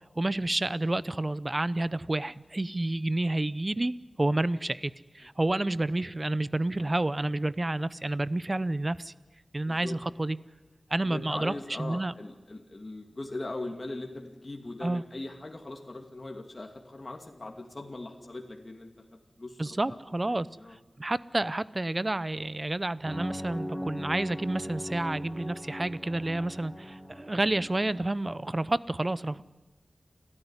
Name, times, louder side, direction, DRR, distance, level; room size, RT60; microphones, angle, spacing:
voice 1, 0.2-9.1 9.5-10.4 10.9-11.5 11.8-12.1 14.8-15.0 19.6-20.5 21.0-29.4, right 2 dB, 35° right, 17 dB, 0.7 m, -29 dB
voice 2, 9.6-9.9 11.0-18.9 19.4-20.0 20.3-20.8, left 2 dB, 40° left, 2 dB, 2.5 m, -40 dB
sound 1, 23.0-28.1, equal, 10° left, 3.2 m, -39 dB
28.5 x 13.5 x 9.9 m, 1.2 s
wide cardioid pair, 65°, 0 cm